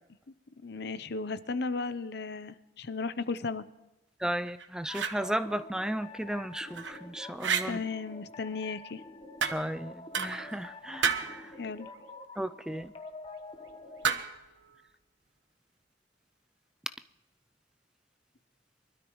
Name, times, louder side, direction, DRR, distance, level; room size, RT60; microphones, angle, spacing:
voice 1, 0.6-3.6 7.6-9.0 11.6-11.9, left 4 dB, 60° left, 0.8 m, -35 dB
voice 2, 4.2-7.8 9.5-11.5 12.4-12.9, right 1 dB, 5° right, 0.4 m, -35 dB
sound 1, 4.5-5.2 6.5-7.0 7.4-7.7 9.4-9.8 10.1-10.6 11.0-11.4 14.0-14.5, right 6 dB, 85° right, 1.1 m, -31 dB
sound 2, 4.9-14.1, left 2 dB, 30° left, 1.2 m, -47 dB
24.5 x 13.0 x 3.2 m
head